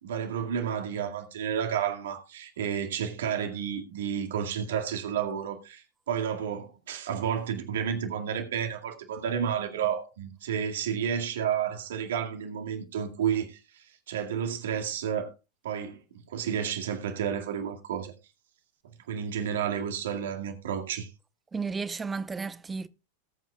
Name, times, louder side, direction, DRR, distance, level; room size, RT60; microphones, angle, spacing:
voice 1, 0.0-15.3 15.6-16.0 16.3-18.1 19.1-21.1, right 8 dB, 60° right, 2.0 m, -31 dB
voice 2, 21.5-22.9, right 4 dB, 15° right, 0.6 m, -33 dB
19.5 x 8.4 x 2.3 m
figure-of-eight pair, 90°, 0 cm